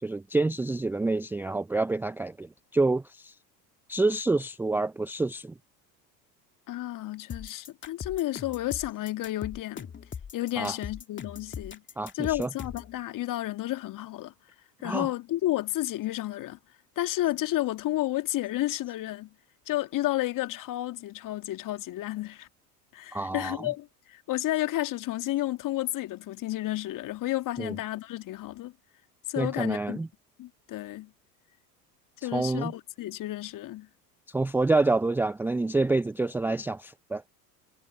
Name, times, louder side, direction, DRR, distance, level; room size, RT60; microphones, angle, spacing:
voice 1, 0.0-3.3 3.9-5.5 10.6-10.8 12.0-12.5 14.8-15.1 23.1-23.7 27.6-27.7 29.4-30.1 32.2-32.7 34.3-37.2, right 3 dB, 5° right, 0.5 m, -27 dB
voice 2, 6.7-9.9 10.3-11.8 12.1-14.3 14.8-16.6 17.0-19.3 19.7-22.5 22.9-28.7 29.3-30.0 30.4-31.1 32.2-33.9, left 15 dB, 40° left, 2.3 m, -31 dB
sound 1, 7.3-12.9, left 7 dB, 25° left, 2.3 m, -40 dB
figure-of-eight pair, 75°, 49 cm